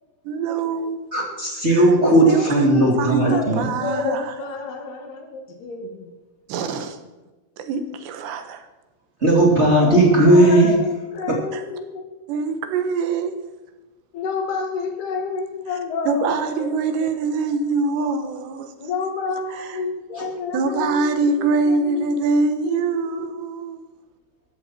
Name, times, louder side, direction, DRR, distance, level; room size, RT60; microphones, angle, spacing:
voice 1, 0.2-1.1 1.7-1.9 2.3-4.3 6.5-7.0 7.6-8.7 11.5-11.6 12.3-13.3 16.1-18.7 19.5-19.8 20.5-23.8, right 4 dB, 80° right, 8 dB, 3.5 m, -24 dB
voice 2, 1.1-3.7 9.2-10.8 11.3-11.4, right 1 dB, 20° right, -1 dB, 1.9 m, -16 dB
voice 3, 2.1-2.4 2.7-3.0 3.3-6.1 9.7-12.0 14.1-17.1 18.8-22.1 22.6-23.6, left 4 dB, 70° left, 3 dB, 4.1 m, -29 dB
14.5 x 14.0 x 4.4 m, 1.2 s
omnidirectional pair, 4.9 m